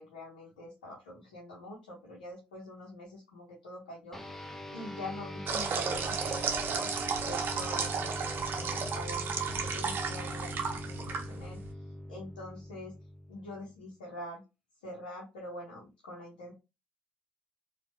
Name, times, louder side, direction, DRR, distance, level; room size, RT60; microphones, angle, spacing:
voice 1, 0.0-11.6 12.1-12.9 13.3-14.4 14.8-16.5, left 1 dB, 75° left, -4 dB, 1.0 m, -45 dB
sound 1, 4.1-13.9, left 1 dB, 5° left, 0.8 m, -42 dB
sound 2, 5.5-11.7, right 6 dB, 45° right, 0.7 m, -33 dB
4.3 x 2.5 x 2.7 m, 0.26 s
figure-of-eight pair, 45°, 5 cm